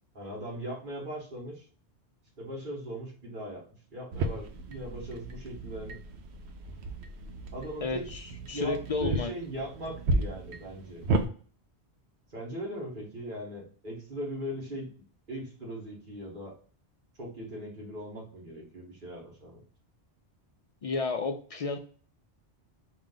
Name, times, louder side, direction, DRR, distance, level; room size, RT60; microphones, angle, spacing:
voice 1, 0.1-1.6 2.4-3.6 3.9-6.0 7.5-8.1 8.5-11.0 12.3-14.9 15.3-16.5 17.2-19.6, equal, 50° right, -2 dB, 1.7 m, -39 dB
sound 1, 4.1-11.3, right 2 dB, 75° right, 0.9 m, -34 dB
voice 2, 7.8-9.3 20.8-21.8, left 3 dB, 60° left, 5 dB, 0.3 m, -32 dB
4.9 x 2.7 x 3.7 m, 0.43 s
omnidirectional pair, 1.1 m